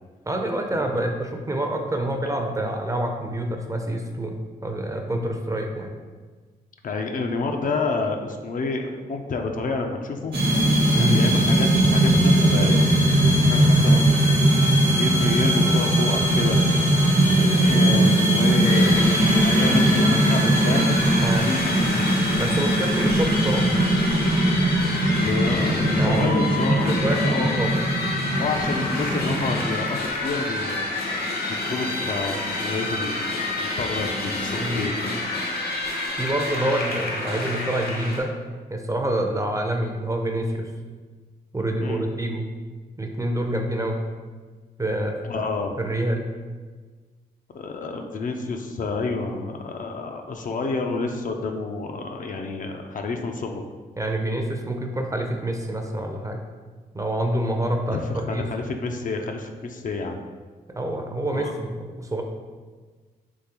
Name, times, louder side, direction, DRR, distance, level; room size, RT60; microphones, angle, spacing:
voice 1, 0.3-4.3 4.6-5.9 10.9-11.2 21.2-21.4 22.4-23.7 26.0-26.3 26.8-27.7 34.6-34.9 36.2-38.3 38.7-40.7 41.5-42.5 43.0-44.0 44.8-45.2 45.8-46.3 54.0-56.4 56.9-58.4 60.7-62.2, right 1 dB, 20° right, 3 dB, 0.5 m, -27 dB
voice 2, 6.8-10.3 10.9-12.8 13.4-16.6 17.2-20.9 21.3-22.1 25.1-27.6 28.4-30.8 31.6-33.3 33.6-34.9 41.8-42.0 45.2-45.7 47.5-53.6 57.9-60.2 61.3-61.5, left 3 dB, 50° left, 3 dB, 0.4 m, -29 dB
sound 1, 10.3-29.6, right 1 dB, 65° right, 1.1 m, -20 dB
sound 2, 18.6-38.2, left 2 dB, 65° left, 0.8 m, -28 dB
3.7 x 3.0 x 2.9 m, 1.4 s
supercardioid pair, 55°, 17 cm